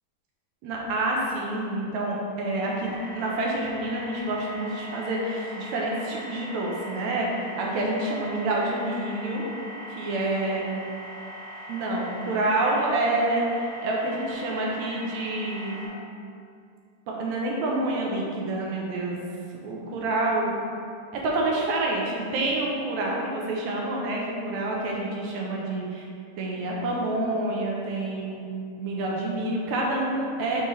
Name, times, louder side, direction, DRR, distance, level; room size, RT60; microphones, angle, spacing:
voice 1, 0.6-7.3 7.6-9.4 9.9-10.7 11.7-15.9 17.1-19.3 19.6-20.6 21.1-26.1 26.4-28.5 28.8-30.7, right 2 dB, 75° right, -2 dB, 1.9 m, -28 dB
sound 1, 2.8-15.9, equal, 65° left, 1.0 m, -41 dB
5.9 x 5.5 x 3.2 m, 2.4 s
omnidirectional pair, 3.6 m